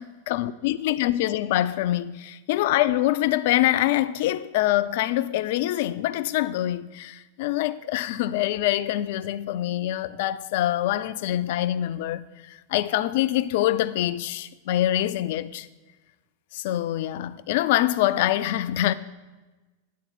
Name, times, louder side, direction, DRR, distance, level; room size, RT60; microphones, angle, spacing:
voice 1, 0.0-15.7 16.5-18.9, left 14 dB, 50° left, 0.4 m, -25 dB
9.3 x 4.2 x 7.2 m
figure-of-eight pair, 90°, 0 cm